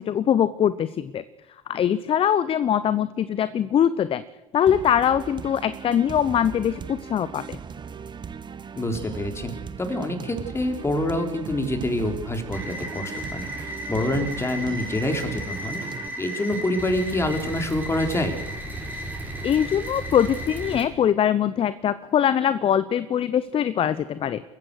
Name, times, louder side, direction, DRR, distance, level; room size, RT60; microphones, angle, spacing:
voice 1, 0.0-1.2 1.7-4.2 4.5-7.6 19.4-24.4, left 9 dB, 30° left, 16 dB, 0.8 m, -22 dB
sound 1, 4.7-16.1, right 6 dB, 25° right, 1.5 m, -38 dB
voice 2, 8.8-9.5 9.8-13.5 13.9-15.8 16.2-18.4, left 1 dB, 15° left, 5 dB, 4.1 m, -26 dB
sound 2, 12.5-20.8, equal, 10° right, 5.4 m, -34 dB
28.5 x 15.0 x 6.7 m, 1.1 s
figure-of-eight pair, 75°, 17 cm